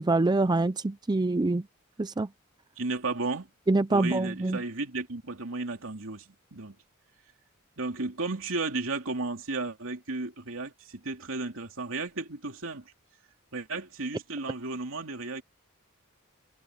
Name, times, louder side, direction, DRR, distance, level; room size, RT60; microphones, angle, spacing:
voice 1, 0.0-1.6 2.0-2.3 3.7-4.6, right 2 dB, 20° right, 0.5 m, -25 dB
voice 2, 2.8-3.5 3.9-6.8 7.8-12.8 13.5-15.4, right 3 dB, 65° right, 3.0 m, -34 dB
head